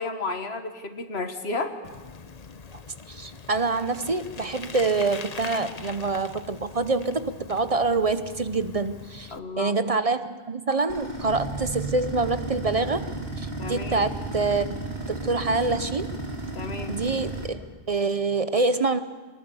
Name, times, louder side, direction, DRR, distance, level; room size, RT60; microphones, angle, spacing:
voice 1, 0.0-1.7 9.3-9.7 13.6-14.1 16.6-17.0, left 3 dB, 90° left, 7 dB, 1.8 m, -32 dB
Bicycle, 1.8-9.4, left 5 dB, 40° left, 0.9 m, -42 dB
voice 2, 3.1-13.1 13.4-14.8 15.1-16.1 16.9-19.0, right 3 dB, 40° right, 11 dB, 0.7 m, -26 dB
sound 1, 10.9-17.5, right 2 dB, 75° right, 3.3 m, -33 dB
23.0 x 19.0 x 6.9 m, 1.3 s
omnidirectional pair, 1.0 m